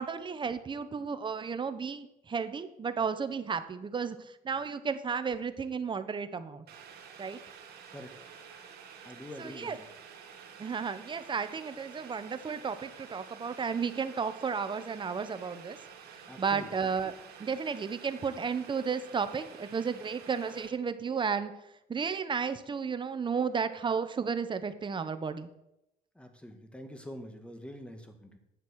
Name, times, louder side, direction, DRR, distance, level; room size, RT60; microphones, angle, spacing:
voice 1, 0.0-6.6 7.2-7.4 9.4-9.8 10.6-15.8 16.4-17.1 17.4-21.5 21.9-25.5, right 6 dB, 30° right, 11 dB, 0.9 m, -33 dB
Boiling, 6.7-20.7, right 7 dB, 70° right, 2.0 m, -50 dB
voice 2, 9.0-9.9 16.3-16.7 26.1-28.4, equal, 5° left, 6 dB, 1.7 m, -45 dB
10.5 x 7.6 x 6.3 m, 0.86 s
cardioid pair, 110°, 17 cm